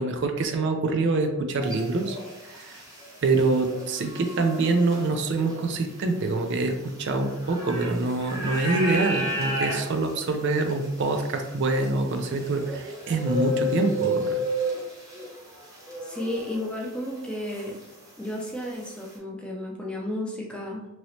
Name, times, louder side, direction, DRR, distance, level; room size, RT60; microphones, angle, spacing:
voice 1, 0.0-2.2 2.5-2.8 3.2-14.4, right 3 dB, 55° right, 5 dB, 0.4 m, -25 dB
sound 1, 1.6-16.9 17.2-19.1, equal, 15° right, 0.8 m, -34 dB
voice 2, 16.0-17.8 18.2-20.9, left 1 dB, 5° left, -2 dB, 0.4 m, -33 dB
3.0 x 2.9 x 2.7 m, 1.0 s
head